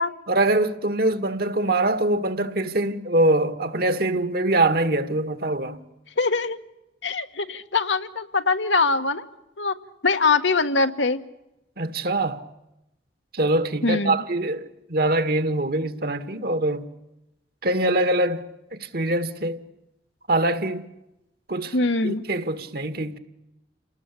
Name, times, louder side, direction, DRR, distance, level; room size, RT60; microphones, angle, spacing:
voice 1, 0.3-5.8 11.8-12.5 13.3-16.9 17.6-19.6 20.3-20.8 21.5-21.8 22.0-23.2, right 2 dB, 55° right, 1.8 m, -23 dB
voice 2, 6.2-6.6 7.0-9.2 9.6-9.7 10.0-11.2 13.8-14.2 21.7-22.2, left 3 dB, 90° left, 1.6 m, -22 dB
29.0 x 19.5 x 8.5 m
head